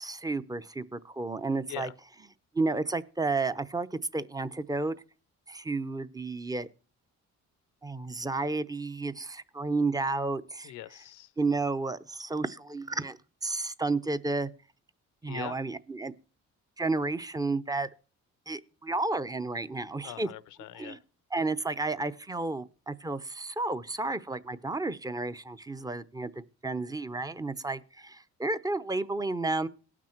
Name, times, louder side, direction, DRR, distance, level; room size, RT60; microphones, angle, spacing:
voice 1, 0.0-1.9 2.5-4.9 5.5-6.7 7.8-10.7 11.4-14.5 15.2-16.1 16.8-17.9 18.5-20.3 20.7-21.0 21.3-29.7, right 3 dB, 10° right, 0.6 m, -32 dB
voice 2, 10.6-11.3 15.3-15.6 20.0-21.0, left 14 dB, 90° left, 0.6 m, -42 dB
18.0 x 6.1 x 4.4 m
cardioid pair, 90°, 30 cm